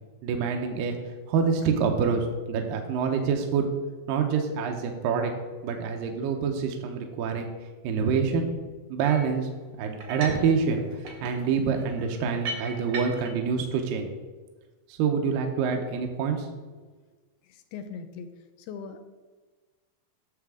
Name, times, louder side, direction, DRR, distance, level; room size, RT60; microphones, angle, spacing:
voice 1, 0.2-1.0 1.3-3.7 4.1-5.3 5.6-7.5 7.8-8.4 8.9-9.5 9.8-10.8 11.2-14.1 14.9-16.5, right 6 dB, 75° right, 3 dB, 2.3 m, -26 dB
sound 1, 9.0-9.3 10.0-10.5 10.8-13.4, right 3 dB, 55° right, 1.6 m, -37 dB
voice 2, 17.5-18.3 18.7-19.0, left 6 dB, 85° left, 8 dB, 2.5 m, -39 dB
9.4 x 6.6 x 3.6 m, 1.3 s
omnidirectional pair, 4.4 m